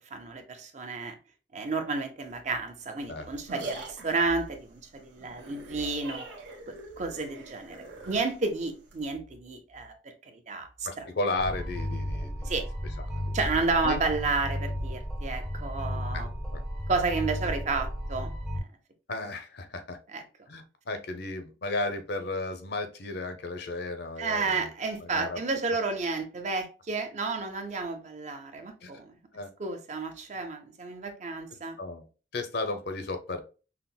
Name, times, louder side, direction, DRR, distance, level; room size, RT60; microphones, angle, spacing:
voice 1, 0.1-1.2 1.5-6.3 7.0-7.8 8.0-11.1 12.4-12.6 13.3-16.3 16.9-18.3 20.1-20.2 24.2-29.1 29.6-31.8, right 3 dB, 40° right, 6 dB, 0.5 m, -31 dB
sound 1, 3.0-9.0, right 2 dB, 80° right, 1.1 m, -43 dB
voice 2, 10.8-12.5 13.1-13.2 13.8-14.0 16.1-16.2 16.5-16.6 19.1-20.0 20.5-24.7 25.0-25.4 28.8-28.9 29.3-29.5 31.5-32.1 32.3-33.4, left 2 dB, 60° left, 7 dB, 0.6 m, -34 dB
sound 2, 11.4-18.6, equal, ahead, 0.6 m, -34 dB
5.7 x 2.0 x 2.2 m, 0.34 s
head